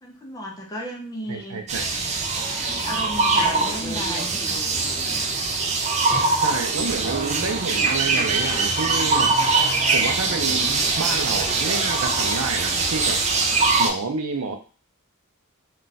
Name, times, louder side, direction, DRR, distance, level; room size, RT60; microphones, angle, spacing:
voice 1, 0.0-1.7 2.6-4.6, left 1 dB, 15° left, 0 dB, 0.6 m, -34 dB
voice 2, 1.3-1.9 6.4-9.4 9.9-13.2 13.8-14.6, right 4 dB, 85° right, 5 dB, 0.6 m, -29 dB
sound 1, 1.7-13.9, right 3 dB, 30° right, 0.4 m, -22 dB
2.4 x 2.3 x 4.0 m, 0.36 s
head